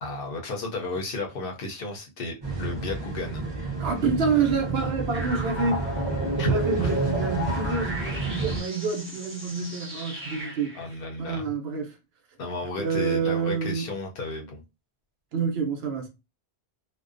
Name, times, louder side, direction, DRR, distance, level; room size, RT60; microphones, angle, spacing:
voice 1, 0.0-3.5 6.4-6.5 6.8-6.9 10.7-11.5 12.4-14.6, left 2 dB, 60° left, 0.7 m, -33 dB
sound 1, 2.4-8.6, right 3 dB, 30° right, 0.5 m, -31 dB
voice 2, 3.8-5.9 6.4-10.8 11.2-11.9 12.8-13.9 15.3-16.1, right 5 dB, 70° right, 0.8 m, -28 dB
sound 2, 5.1-10.8, equal, 10° right, 0.9 m, -33 dB
2.4 x 2.1 x 2.4 m
omnidirectional pair, 1.1 m